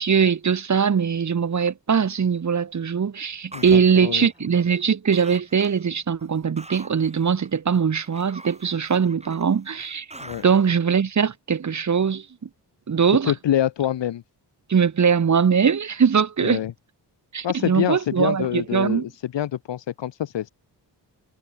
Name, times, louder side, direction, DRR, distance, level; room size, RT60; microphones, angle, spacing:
voice 1, 0.0-10.1 10.4-12.5 12.9-13.3 14.7-16.6 17.3-19.0, right 6 dB, 40° right, 1.3 m, -21 dB
voice 2, 3.5-4.3 10.2-10.4 13.2-14.2 16.4-16.7 17.4-20.5, left 11 dB, 85° left, 1.1 m, -26 dB
sound 1, 3.5-4.9 5.1-5.9 6.2-10.7, right 2 dB, 15° right, 7.9 m, -44 dB
wide cardioid pair, 135°, 42 cm